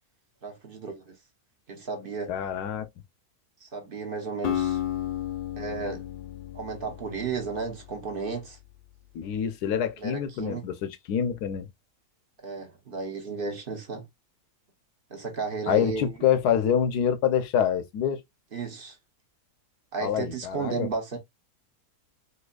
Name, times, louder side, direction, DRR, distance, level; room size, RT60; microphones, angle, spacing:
voice 1, 0.4-1.1 1.7-2.3 3.6-4.8 5.6-6.0 6.5-8.6 10.0-10.6 12.4-14.0 15.1-16.1 18.5-19.0 19.9-21.2, right 4 dB, 45° right, 0.9 m, -33 dB
voice 2, 2.3-2.9 9.1-11.7 15.7-18.2 20.0-20.9, left 8 dB, 85° left, 1.2 m, -26 dB
Acoustic guitar, 4.4-8.5, left 11 dB, 60° left, 0.5 m, -33 dB
4.3 x 2.7 x 2.3 m
omnidirectional pair, 1.7 m